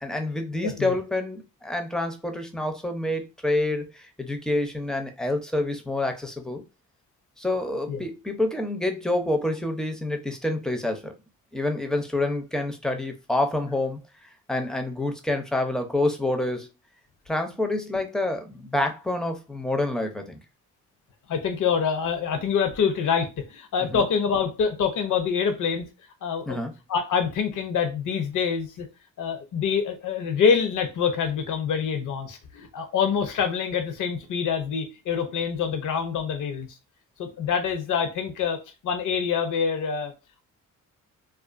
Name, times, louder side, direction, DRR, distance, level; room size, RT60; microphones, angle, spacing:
voice 1, 0.0-6.6 7.4-11.1 11.5-14.0 14.5-16.7 17.3-20.4 23.9-24.0 26.5-26.7, left 2 dB, ahead, 0.5 m, -27 dB
voice 2, 0.6-0.9 7.9-8.0 21.3-25.9 26.2-26.6 26.9-28.9 29.2-36.7 37.2-38.6 38.8-40.1, left 6 dB, 65° left, 0.6 m, -26 dB
2.4 x 2.4 x 2.4 m
cardioid pair, 75°, 34 cm